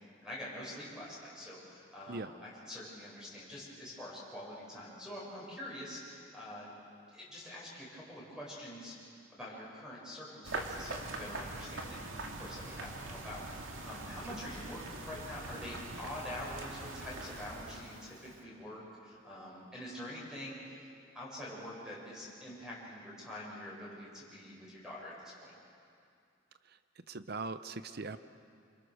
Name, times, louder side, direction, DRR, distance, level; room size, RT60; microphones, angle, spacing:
voice 1, 0.2-6.7 7.1-8.9 9.3-20.6 21.1-25.5, left 1 dB, 5° right, -6 dB, 6.7 m, -45 dB
sound 1, 10.4-18.4, right 2 dB, 85° right, 2.3 m, -43 dB
voice 2, 27.1-28.2, right 3 dB, 50° right, 12 dB, 0.7 m, -40 dB
27.5 x 26.0 x 6.5 m, 2.4 s
head